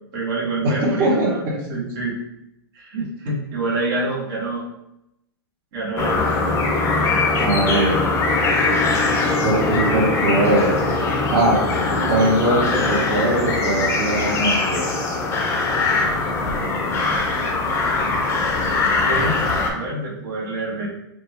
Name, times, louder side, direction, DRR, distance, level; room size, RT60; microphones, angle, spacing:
voice 1, 0.1-1.4 1.7-2.1 2.7-4.6 5.7-6.2 19.0-20.9, right 2 dB, 55° right, -4 dB, 1.4 m, -26 dB
voice 2, 0.6-1.6 7.4-8.0 9.4-10.8 11.3-11.6 12.1-14.9, right 1 dB, 35° right, -7 dB, 1.2 m, -20 dB
sound 1, 6.0-19.7, left 3 dB, 20° left, 0.6 m, -21 dB
4.8 x 2.3 x 3.3 m, 0.87 s
hypercardioid pair, 145°, 13 cm